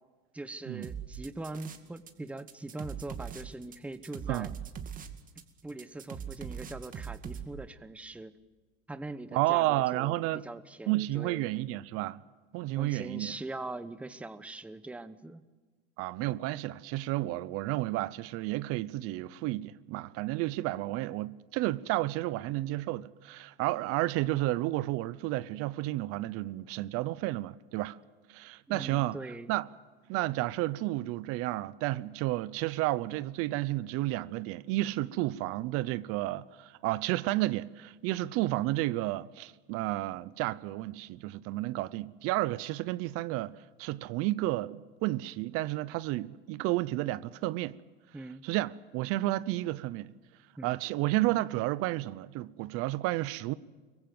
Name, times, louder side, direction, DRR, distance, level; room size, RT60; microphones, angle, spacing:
voice 1, 0.3-4.5 5.6-8.3 8.9-11.5 12.8-15.4 28.7-29.5 48.1-48.4 50.6-50.7, right 2 dB, 5° right, 0.9 m, -42 dB
sound 1, 0.8-2.1 2.4-7.4, right 7 dB, 30° right, 2.2 m, -41 dB
voice 2, 9.3-10.4 10.9-12.2 12.5-13.3 16.0-28.0 28.3-29.2 29.5-29.7 30.1-47.8 48.4-50.1 50.6-53.5, right 17 dB, 50° right, 0.8 m, -31 dB
26.0 x 22.5 x 7.9 m
supercardioid pair, 135°, 29 cm